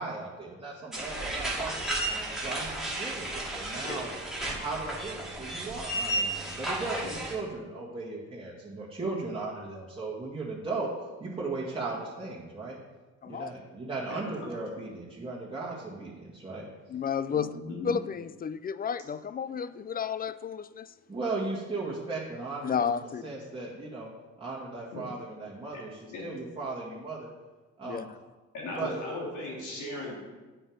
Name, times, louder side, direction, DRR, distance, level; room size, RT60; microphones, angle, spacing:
voice 1, 0.0-2.0 2.4-4.1 4.5-10.9 11.2-12.8 13.3-16.7 21.1-24.1 24.4-27.3 27.8-28.1 28.8-28.9, right 3 dB, 15° right, -6 dB, 1.8 m, -37 dB
sound 1, 0.9-7.3, right 1 dB, ahead, 2.3 m, -33 dB
voice 2, 14.1-14.5 17.3-17.9 24.9-25.0 26.1-26.2 28.5-30.1, left 2 dB, 85° left, -3 dB, 3.1 m, -37 dB
voice 3, 16.9-17.5 17.8-20.9 22.6-23.4 27.8-28.1, left 7 dB, 30° left, 15 dB, 0.4 m, -32 dB
8.8 x 6.2 x 5.1 m, 1.2 s
cardioid pair, 90°, 30 cm